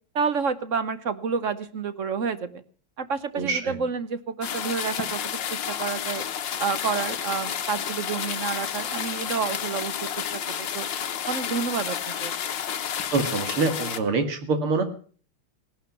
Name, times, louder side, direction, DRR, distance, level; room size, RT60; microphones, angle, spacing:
voice 1, 0.1-2.6 3.0-5.2 5.5-6.2 6.6-10.9 11.3-12.3, right 5 dB, 50° right, 13 dB, 0.9 m, -29 dB
voice 2, 3.3-3.8 13.1-14.8, right 3 dB, 80° right, 7 dB, 3.1 m, -25 dB
sound 1, 4.4-14.0, left 9 dB, 60° left, 1.7 m, -31 dB
18.0 x 11.5 x 5.9 m, 0.43 s
omnidirectional pair, 2.4 m